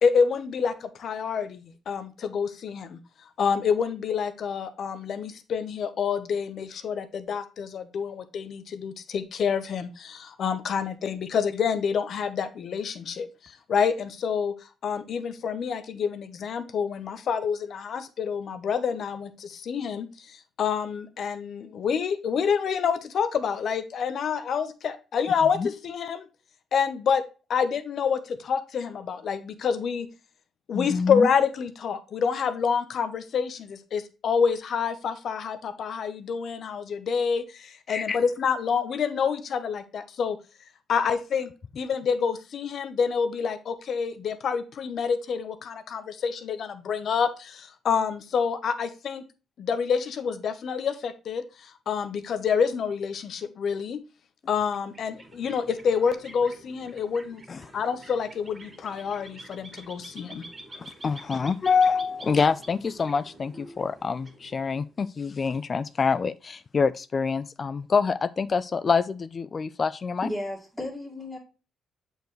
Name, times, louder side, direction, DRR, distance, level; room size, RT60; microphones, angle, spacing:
voice 1, 0.0-3.0 3.4-14.5 14.8-26.2 26.7-27.2 27.5-30.1 30.7-40.4 40.9-41.5 41.8-49.3 49.6-54.0 54.5-57.4 57.7-60.4, left 6 dB, 60° left, 0.9 m, -27 dB
voice 2, 30.7-31.3 37.9-38.2 57.5-57.6 60.8-70.3, left 5 dB, 40° left, 0.4 m, -26 dB
sound 1, 54.7-65.0, right 1 dB, 30° right, 2.2 m, -48 dB
voice 3, 70.2-71.4, left 1 dB, 5° left, 2.3 m, -34 dB
7.8 x 4.6 x 3.1 m
cardioid pair, 90°, 0 cm